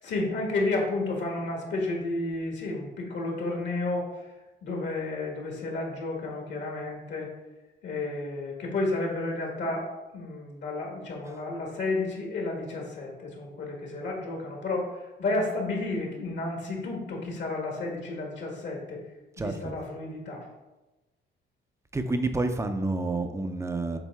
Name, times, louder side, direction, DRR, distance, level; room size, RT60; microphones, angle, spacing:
voice 1, 0.0-4.0 4.6-7.3 7.8-9.9 10.1-19.0 19.4-20.4, left 2 dB, 65° left, 0 dB, 1.6 m, -31 dB
voice 2, 19.4-19.7 21.9-24.0, right 2 dB, 15° right, 7 dB, 0.6 m, -29 dB
7.3 x 3.6 x 3.6 m, 1.1 s
cardioid pair, 90°, 20 cm